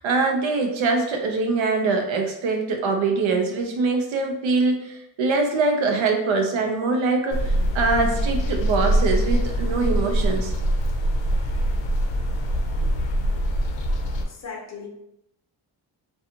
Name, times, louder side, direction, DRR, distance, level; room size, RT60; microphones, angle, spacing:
voice 1, 0.0-10.5 12.8-12.9, right 3 dB, 85° right, 3 dB, 0.7 m, -23 dB
sound 1, 7.3-14.2, right 1 dB, 75° left, 0.5 m, -23 dB
voice 2, 14.3-14.9, left 5 dB, 35° left, -1 dB, 0.6 m, -37 dB
2.5 x 2.4 x 2.7 m, 0.80 s
wide cardioid pair, 125°, 45 cm